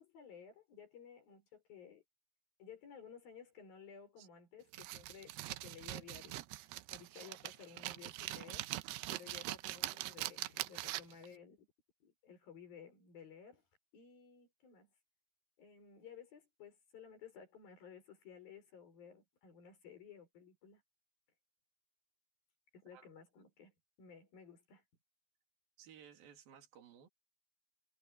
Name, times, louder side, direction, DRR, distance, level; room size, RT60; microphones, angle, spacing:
voice 1, 0.0-2.0 2.6-11.7 12.0-13.6 13.9-14.9 15.6-20.8 22.7-24.8, left 7 dB, 60° left, 7.5 m, -56 dB
sound 1, 4.7-11.3, right 17 dB, 85° right, 2.7 m, -43 dB
voice 2, 25.8-27.1, right 8 dB, 65° right, 4.7 m, -58 dB
omnidirectional pair, 4.7 m